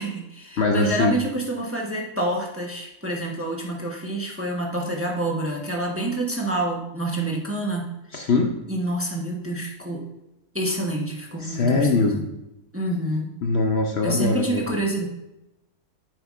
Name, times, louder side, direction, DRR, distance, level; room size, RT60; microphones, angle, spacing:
voice 1, 0.0-7.9 8.7-10.0 10.5-12.2 12.7-13.3 14.0-15.1, right 1 dB, 10° right, -1 dB, 1.0 m, -27 dB
voice 2, 0.6-1.2 8.1-8.5 11.4-12.2 13.4-14.8, left 3 dB, 55° left, 2 dB, 0.9 m, -22 dB
9.6 x 7.7 x 2.5 m, 0.91 s
omnidirectional pair, 1.5 m